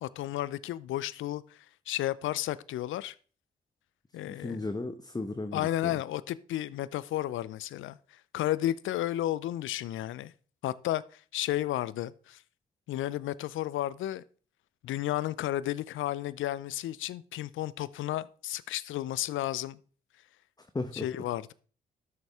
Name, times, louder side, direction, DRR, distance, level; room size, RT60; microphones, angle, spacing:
voice 1, 0.0-1.6 1.9-3.1 4.1-4.6 5.5-10.3 10.6-12.4 12.9-14.2 14.8-19.8 20.9-21.5, left 13 dB, 70° left, 0.6 m, -33 dB
voice 2, 4.2-6.0 20.6-21.1, left 2 dB, 20° left, 1.0 m, -36 dB
12.5 x 6.6 x 3.5 m
hypercardioid pair, 45°, 21 cm